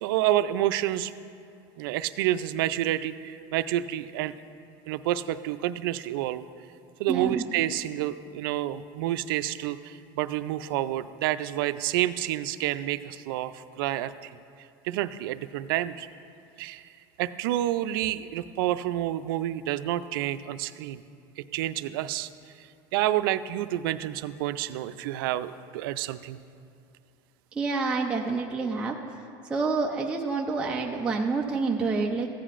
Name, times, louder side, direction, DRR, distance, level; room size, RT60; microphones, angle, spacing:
voice 1, 0.0-1.1 1.8-4.3 4.9-6.5 7.0-16.1 16.6-16.9 17.2-21.0 21.4-22.3 22.6-26.4, right 13 dB, 80° right, 13 dB, 0.4 m, -29 dB
voice 2, 7.1-7.4 27.5-29.0 29.4-32.3, right 4 dB, 10° right, -1 dB, 0.4 m, -28 dB
15.0 x 10.0 x 2.5 m, 2.5 s
cardioid pair, 160°, 12 cm